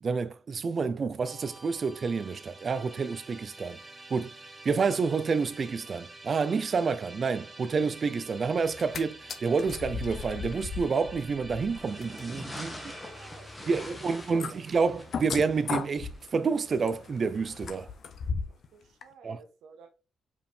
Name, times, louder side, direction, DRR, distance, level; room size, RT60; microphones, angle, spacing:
voice 1, 0.0-3.8 4.1-4.3 4.6-12.8 13.7-17.9 19.2-19.4, right 5 dB, 35° right, 0.5 m, -29 dB
Musical instrument, 1.2-16.4, right 2 dB, 10° right, 0.9 m, -49 dB
sound 1, 8.6-9.0 9.3-18.7 19.0-19.1, left 5 dB, 50° left, 0.8 m, -38 dB
sound 2, 11.7-17.7, left 1 dB, 10° left, 1.4 m, -46 dB
voice 2, 12.6-14.6 18.5-19.9, right 5 dB, 90° right, 1.3 m, -54 dB
5.3 x 4.7 x 4.4 m
cardioid pair, 155°, 0 cm